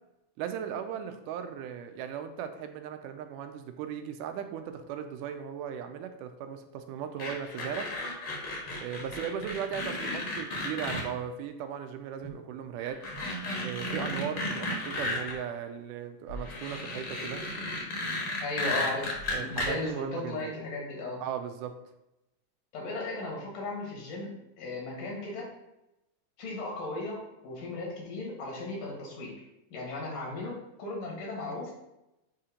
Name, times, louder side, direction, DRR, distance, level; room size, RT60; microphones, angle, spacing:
voice 1, 0.4-7.9 8.8-13.0 13.6-17.4 19.3-20.5 21.2-21.7, right 8 dB, 90° right, 7 dB, 2.1 m, -37 dB
sound 1, 7.2-11.0 12.2-12.3 12.8-15.3 16.3-19.7, left 1 dB, 55° left, 1.2 m, -34 dB
voice 2, 18.4-21.2 22.7-25.5 26.4-29.4 29.7-31.7, left 2 dB, 85° left, -2 dB, 3.3 m, -36 dB
6.9 x 2.9 x 5.0 m, 0.91 s
omnidirectional pair, 3.6 m